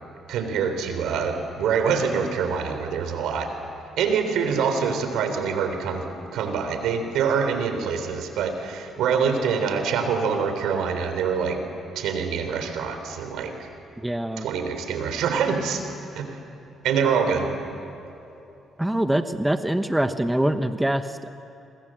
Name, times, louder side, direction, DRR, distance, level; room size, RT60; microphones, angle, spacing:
voice 1, 0.3-3.5 4.0-11.6 12.0-13.5 14.4-15.8 16.1-16.4 16.8-17.5, right 6 dB, 85° right, 7 dB, 3.4 m, -25 dB
voice 2, 14.0-14.5 18.8-21.3, right 1 dB, 5° right, 9 dB, 1.1 m, -24 dB
27.5 x 23.5 x 7.6 m, 2.9 s
cardioid pair, 90°, 0 cm